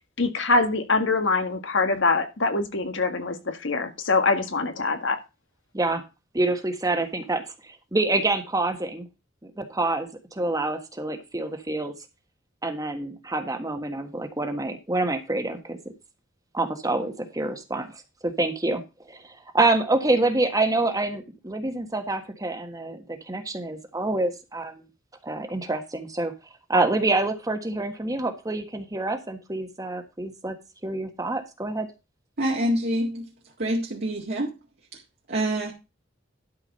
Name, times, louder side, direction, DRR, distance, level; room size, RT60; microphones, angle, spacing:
voice 1, 0.2-5.2, left 3 dB, 65° left, 1.7 m, -24 dB
voice 2, 6.3-9.1 9.6-11.9 12.6-15.8 16.5-18.8 19.1-24.8 25.2-26.3 26.7-30.5 30.8-31.9, right 2 dB, 20° right, 1.4 m, -27 dB
voice 3, 32.4-33.3 33.6-34.5 34.9-35.0 35.3-35.7, right 1 dB, 50° right, 2.0 m, -26 dB
12.0 x 4.7 x 5.5 m
head